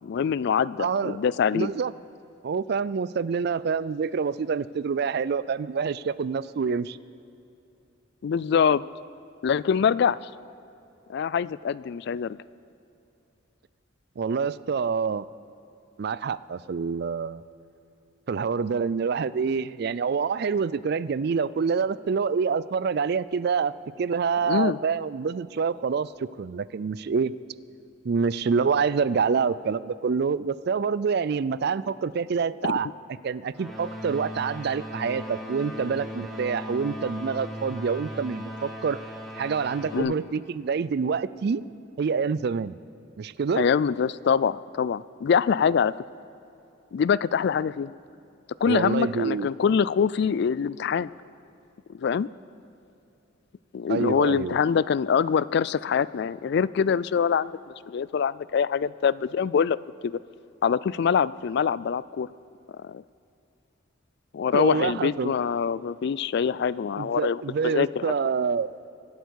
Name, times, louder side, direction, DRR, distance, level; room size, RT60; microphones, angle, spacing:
voice 1, 0.0-1.7 8.2-8.8 9.4-10.2 11.1-12.4 24.4-24.8 32.6-32.8 39.9-40.1 43.6-45.9 46.9-47.9 48.6-51.1 51.9-52.3 53.7-57.5 57.9-59.8 60.0-60.2 60.6-62.3 62.8-63.0 64.3-68.1, left 6 dB, 60° left, 19 dB, 0.3 m, -24 dB
voice 2, 0.8-1.2 1.5-1.9 2.4-7.0 14.2-15.3 16.0-17.4 18.3-23.7 24.0-27.3 28.0-32.9 33.2-39.0 39.4-41.6 42.0-42.7 43.2-43.6 48.7-49.5 53.9-54.6 64.5-65.3 67.0-68.7, right 5 dB, 55° right, 18 dB, 0.4 m, -26 dB
sound 1, 33.5-40.0, equal, ahead, 1.7 m, -37 dB
24.5 x 8.1 x 6.4 m, 2.8 s
head